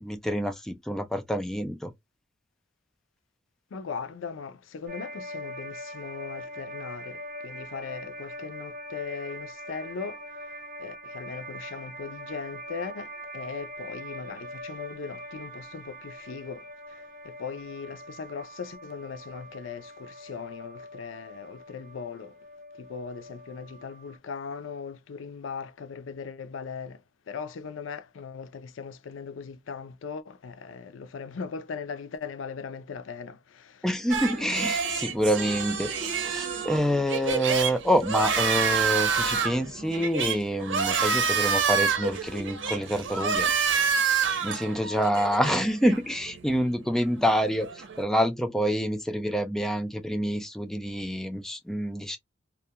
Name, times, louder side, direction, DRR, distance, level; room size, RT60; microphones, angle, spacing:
voice 1, 0.0-1.9 33.8-43.5 44.1-52.2, equal, ahead, 0.3 m, -27 dB
voice 2, 3.7-10.5 10.8-22.3 22.8-27.0 27.3-33.8, left 5 dB, 85° left, 0.4 m, -39 dB
sound 1, 4.9-24.2, equal, 35° right, 1.2 m, -42 dB
sound 2, 34.1-48.0, right 6 dB, 75° right, 0.7 m, -28 dB
2.4 x 2.2 x 2.7 m
head